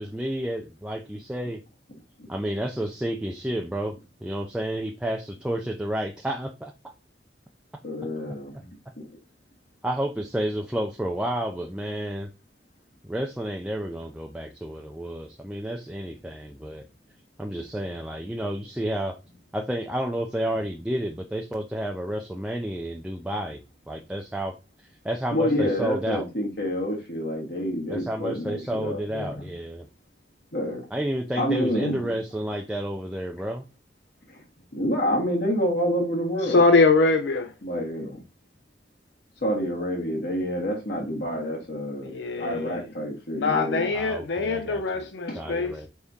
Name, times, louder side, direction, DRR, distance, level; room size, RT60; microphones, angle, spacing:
voice 1, 0.0-1.6 2.3-6.7 9.8-12.3 13.0-16.8 17.4-19.2 19.5-24.5 25.0-26.3 27.9-29.9 30.9-33.7 43.9-44.8 45.4-45.9, right 1 dB, 5° right, 0.3 m, -30 dB
voice 2, 7.8-8.7 9.0-9.1 25.3-29.4 30.5-30.8 31.4-32.0 34.7-36.6 37.6-38.2 39.4-42.1 42.4-43.8, equal, 65° left, 1.5 m, -28 dB
voice 3, 36.4-37.5 42.0-42.8 43.3-45.8, left 3 dB, 85° left, 0.5 m, -22 dB
4.6 x 3.5 x 2.6 m
head